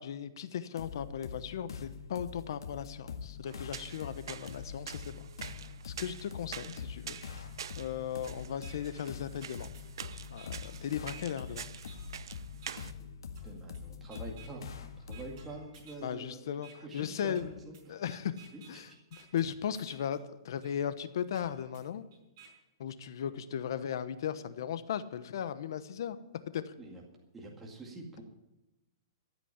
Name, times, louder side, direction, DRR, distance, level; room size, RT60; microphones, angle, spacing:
voice 1, 0.0-5.3 5.8-7.2 7.8-9.7 10.3-11.7 16.0-17.5 17.9-18.3 18.7-18.9 19.3-22.1 22.8-26.2 26.5-26.6, left 9 dB, 65° left, 13 dB, 1.0 m, -37 dB
sound 1, 0.8-15.5, left 6 dB, 85° left, 1.8 m, -45 dB
sound 2, 3.5-12.9, right 9 dB, 75° right, 0.6 m, -47 dB
sound 3, 6.6-6.7 7.1-8.1 8.6-8.7 9.3-12.2 12.6-12.7 13.3-13.8 14.1-14.7 15.1-16.1 16.6-16.7 17.3-20.2 20.6-20.7 21.3-22.5, right 3 dB, 40° right, 5.2 m, -55 dB
voice 2, 12.9-16.5 16.8-18.0 18.5-19.0 23.2-23.4 26.8-27.0 27.3-28.2, right 2 dB, 10° right, -1 dB, 2.1 m, -47 dB
14.0 x 8.4 x 9.9 m, 0.95 s
hypercardioid pair, 160°, 2 cm